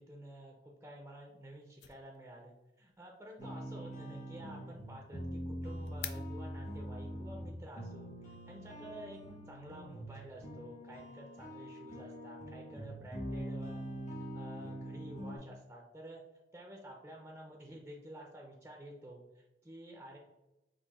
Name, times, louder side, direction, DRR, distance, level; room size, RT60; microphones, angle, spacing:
voice 1, 0.0-9.2 9.5-13.8 14.3-16.2 16.5-20.2, right 1 dB, 15° right, 0 dB, 0.5 m, -51 dB
sound 1, 1.2-6.9, left 11 dB, 70° left, 0.4 m, -53 dB
sound 2, 3.4-15.4, equal, 40° left, 1.2 m, -44 dB
4.5 x 2.6 x 4.1 m, 0.98 s
head